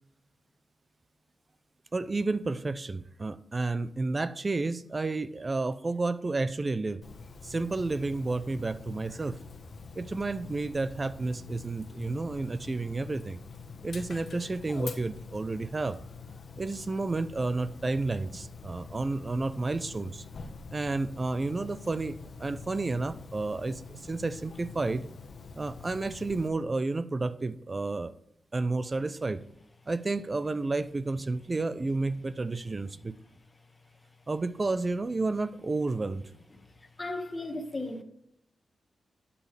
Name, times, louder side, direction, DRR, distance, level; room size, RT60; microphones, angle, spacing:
voice 1, 1.9-7.0 7.4-9.4 10.0-13.4 13.8-16.0 16.6-20.2 20.7-25.1 25.5-28.1 28.5-29.4 29.9-33.2 34.3-36.3, right 3 dB, 30° right, 0.7 m, -31 dB
Dog, 7.0-26.5, left 4 dB, 60° left, 1.3 m, -45 dB
voice 2, 37.0-38.0, left 2 dB, 25° left, 1.7 m, -35 dB
12.5 x 8.6 x 3.4 m
cardioid pair, 80°, 0 cm